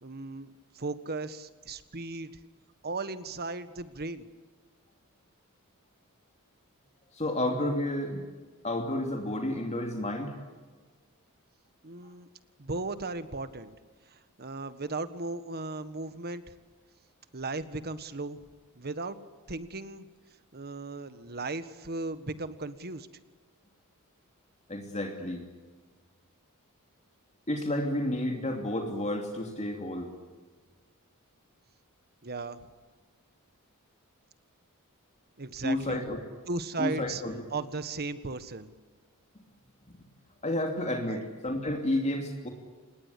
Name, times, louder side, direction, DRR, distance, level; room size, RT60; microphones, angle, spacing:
voice 1, 0.0-2.3 2.8-4.3 11.8-12.3 12.6-13.7 14.1-16.4 17.3-18.4 18.7-19.2 19.5-20.1 20.5-23.1 32.2-32.6 35.4-36.0 36.5-37.2 37.5-38.7 41.1-41.2, right 3 dB, 45° right, 12 dB, 1.6 m, -36 dB
voice 2, 7.1-8.2 8.6-10.3 24.7-25.4 27.5-30.1 35.6-36.2 36.8-37.3 39.9-40.0 40.4-42.5, left 1 dB, 30° left, 3 dB, 2.8 m, -31 dB
26.5 x 20.0 x 8.5 m, 1.4 s
head